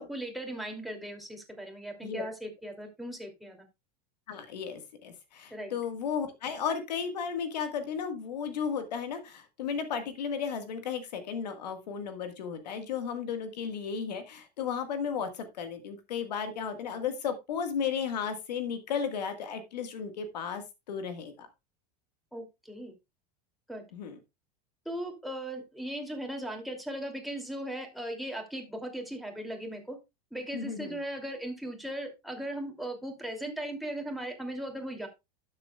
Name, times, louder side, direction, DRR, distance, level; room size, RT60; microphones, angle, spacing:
voice 1, 0.0-3.6 5.5-5.8 22.3-22.9 23.7-23.8 24.8-30.0 30.3-35.1, right 1 dB, ahead, 2 dB, 2.7 m, -38 dB
voice 2, 4.3-21.5 23.9-24.2 30.5-31.0, left 7 dB, 90° left, 8 dB, 1.7 m, -34 dB
12.0 x 7.4 x 2.3 m, 0.23 s
supercardioid pair, 105°, 21 cm